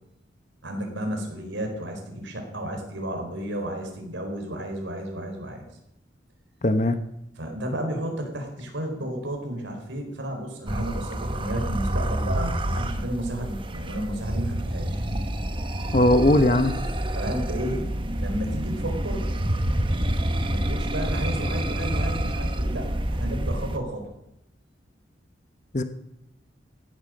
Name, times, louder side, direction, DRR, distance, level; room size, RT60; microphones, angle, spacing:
voice 1, 0.6-5.6 7.4-15.0 17.1-17.9 18.2-19.2 20.5-24.1, right 1 dB, 85° right, 2 dB, 4.6 m, -32 dB
voice 2, 6.6-7.0 15.9-16.8 25.7-25.8, left 1 dB, 40° left, 10 dB, 0.9 m, -19 dB
sound 1, 10.7-23.8, right 1 dB, 25° right, 1.1 m, -28 dB
16.0 x 12.0 x 6.5 m, 0.84 s
head